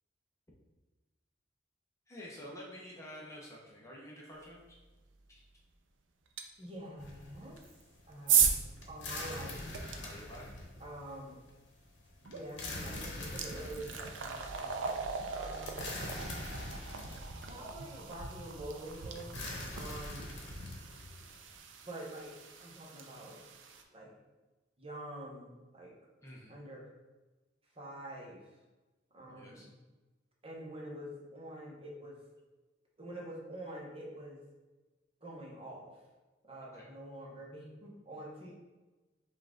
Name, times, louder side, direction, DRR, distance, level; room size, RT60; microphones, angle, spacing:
voice 1, 2.1-4.8 5.3-5.4 10.0-10.5 19.7-20.0 26.2-26.5 29.3-29.7 36.7-36.9, equal, 15° left, -4 dB, 0.7 m, -49 dB
sound 1, 6.4-6.5 7.5-10.0 12.3-12.4 12.8-23.8, right 7 dB, 85° right, 0.5 m, -36 dB
voice 2, 6.6-7.6 8.1-8.6 8.9-9.6 10.8-11.4 12.2-15.0 15.3-15.9 17.5-19.4 19.7-20.4 21.8-22.3 22.6-23.4 23.9-24.1 24.8-25.9 26.5-26.9 27.7-28.4 29.1-29.7 30.4-32.2 33.0-34.4 35.2-36.0 36.4-38.5, right 1 dB, 30° right, -3 dB, 1.0 m, -46 dB
sound 2, 7.0-21.5, left 2 dB, 70° left, 0.9 m, -45 dB
5.3 x 2.5 x 3.7 m, 1.2 s
head